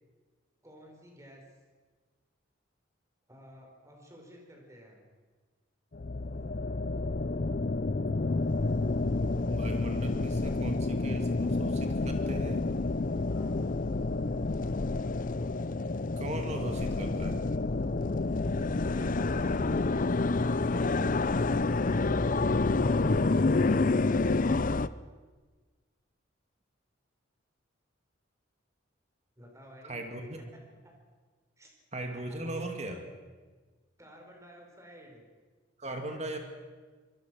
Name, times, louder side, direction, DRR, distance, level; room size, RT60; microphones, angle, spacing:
voice 1, 0.6-1.4 3.3-5.1 6.3-6.5 10.2-10.6 13.3-13.6 18.5-22.1 23.0-24.2 29.4-30.9 31.6-31.7 32.0-32.4 34.0-35.3 35.8-36.4, equal, 15° right, 1 dB, 5.2 m, -53 dB
sound 1, 5.9-24.9, left 3 dB, 40° left, 0.6 m, -29 dB
voice 2, 9.4-12.7 16.2-17.6 29.8-30.4 31.9-33.0 35.8-36.4, right 1 dB, 35° right, 4 dB, 2.6 m, -38 dB
25.0 x 21.5 x 6.5 m, 1.4 s
head